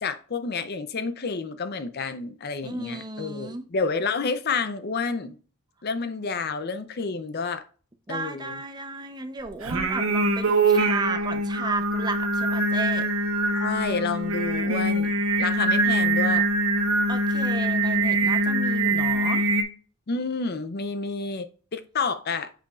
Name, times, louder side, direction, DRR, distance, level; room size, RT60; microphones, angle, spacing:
voice 1, 0.0-5.4 5.8-7.6 8.1-8.6 13.5-15.1 15.4-16.5 20.1-22.5, left 4 dB, 45° left, 0.5 m, -29 dB
voice 2, 2.6-3.6 8.1-13.0 17.1-19.4, right 3 dB, 20° right, 0.6 m, -34 dB
Singing, 9.6-19.6, right 2 dB, 65° right, 1.1 m, -23 dB
8.5 x 5.0 x 2.4 m
head